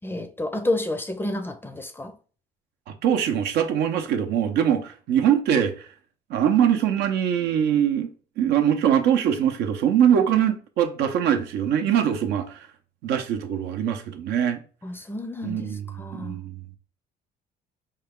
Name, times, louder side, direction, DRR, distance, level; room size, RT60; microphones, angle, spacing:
voice 1, 0.0-2.2 14.8-16.4, left 1 dB, 15° left, 0.4 m, -30 dB
voice 2, 2.9-5.9 6.3-8.1 8.4-12.6 13.0-14.6 15.4-16.6, right 9 dB, 80° right, 0.7 m, -22 dB
4.7 x 2.3 x 3.5 m
cardioid pair, 110°, 17 cm